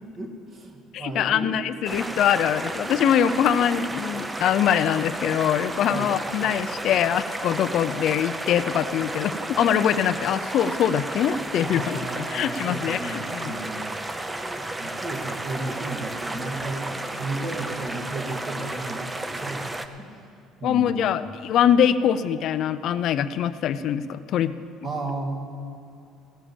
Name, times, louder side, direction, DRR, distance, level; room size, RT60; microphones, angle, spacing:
voice 1, 0.1-1.5 5.9-6.1 11.6-14.0 14.5-19.6 20.0-20.3 20.6-21.3 24.8-25.4, right 2 dB, 40° right, 2 dB, 1.8 m, -34 dB
voice 2, 0.9-12.0 12.3-13.5 20.6-24.5, left 9 dB, 60° left, 12 dB, 0.4 m, -23 dB
sound 1, 1.8-19.9, right 2 dB, 15° right, 0.6 m, -32 dB
16.0 x 7.1 x 7.2 m, 2.5 s
cardioid pair, 120°, 0 cm